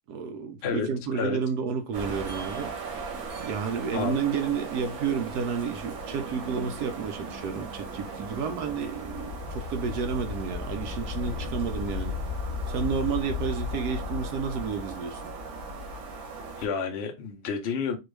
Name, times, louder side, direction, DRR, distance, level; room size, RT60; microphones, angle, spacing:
voice 1, 0.1-2.7 3.4-12.2 12.7-15.3, right 6 dB, 70° right, 0.9 m, -31 dB
sound 1, 1.9-16.7, left 1 dB, 85° right, 2.0 m, -36 dB
voice 2, 16.6-18.0, left 6 dB, 80° left, 0.5 m, -30 dB
4.3 x 2.4 x 3.2 m
omnidirectional pair, 2.1 m